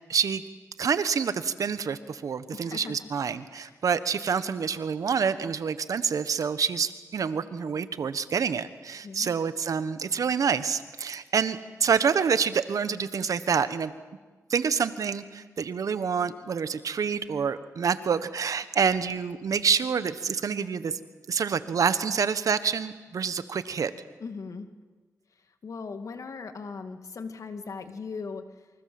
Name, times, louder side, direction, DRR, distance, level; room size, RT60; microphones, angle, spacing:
voice 1, 0.1-0.4 0.8-13.9 14.5-21.0 21.3-23.9, right 6 dB, 70° right, 13 dB, 1.3 m, -27 dB
voice 2, 2.5-3.1 3.5-3.8 9.0-9.4 24.2-24.7 25.6-28.5, left 4 dB, 65° left, 8 dB, 2.3 m, -39 dB
27.5 x 25.0 x 7.8 m, 1.3 s
cardioid pair, 80°, 6 cm